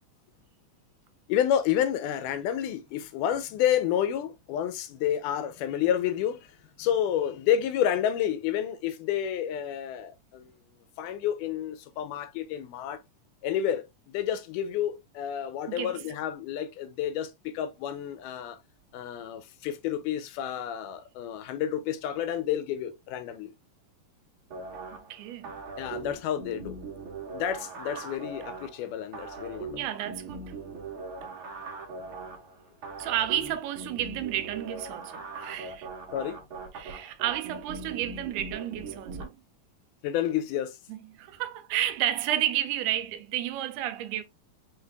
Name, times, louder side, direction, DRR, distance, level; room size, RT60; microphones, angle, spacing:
voice 1, 1.3-6.5 6.8-10.5 11.0-13.0 13.4-18.6 18.9-23.5 25.8-26.8 27.3-29.8 33.0-33.1 36.1-36.4 40.0-40.8, left 10 dB, 85° left, 2.1 m, -30 dB
sound 1, 24.5-39.2, right 3 dB, 60° right, 1.4 m, -40 dB
voice 2, 25.1-25.6 29.8-30.6 33.0-35.9 36.7-39.4 40.9-44.2, right 12 dB, 85° right, 2.0 m, -31 dB
5.7 x 3.2 x 2.3 m
omnidirectional pair, 3.6 m